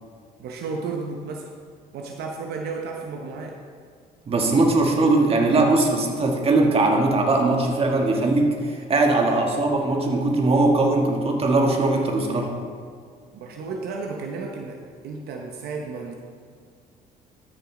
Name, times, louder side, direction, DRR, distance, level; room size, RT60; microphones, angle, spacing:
voice 1, 0.4-1.5 1.9-3.6 13.3-16.1, right 4 dB, 70° right, 2 dB, 0.9 m, -33 dB
voice 2, 4.3-12.5, right 2 dB, 35° right, 1 dB, 1.5 m, -20 dB
12.5 x 6.5 x 3.8 m, 2.1 s
cardioid pair, 110°, 17 cm